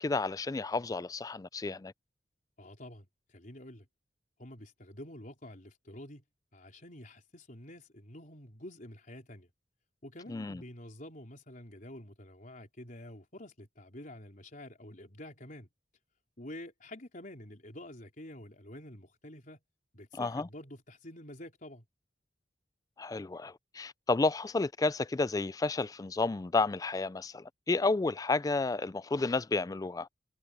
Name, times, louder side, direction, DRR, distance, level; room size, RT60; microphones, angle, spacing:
voice 1, 0.0-1.9 10.3-10.6 20.2-20.5 23.0-30.1, left 3 dB, 20° left, 0.3 m, -31 dB
voice 2, 2.6-3.9 4.4-6.2 6.5-9.5 10.0-15.7 16.4-19.6 19.9-21.8, left 1 dB, 45° left, 4.3 m, -48 dB
head